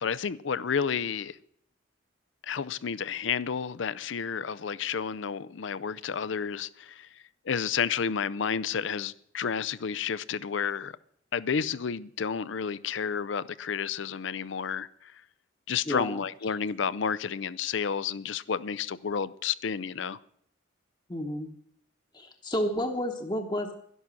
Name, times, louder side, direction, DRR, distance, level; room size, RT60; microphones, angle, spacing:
voice 1, 0.0-1.4 2.4-7.1 7.5-11.0 11.3-15.2 15.7-20.2, left 6 dB, 70° left, 0.5 m, -31 dB
voice 2, 15.9-16.2 21.1-21.5 22.1-23.7, equal, 25° left, 1.0 m, -31 dB
12.0 x 11.0 x 6.2 m
head